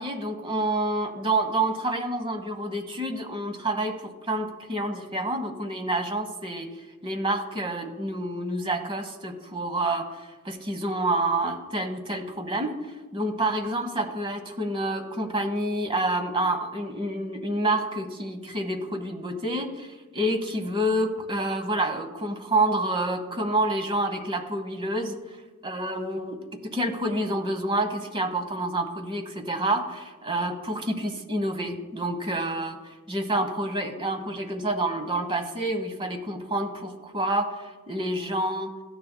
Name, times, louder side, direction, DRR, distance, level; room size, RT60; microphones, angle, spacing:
voice 1, 0.0-4.0 4.2-6.7 7.0-12.7 13.1-25.2 25.6-38.7, right 1 dB, 25° right, 6 dB, 1.0 m, -28 dB
15.0 x 9.9 x 2.2 m, 1.2 s
head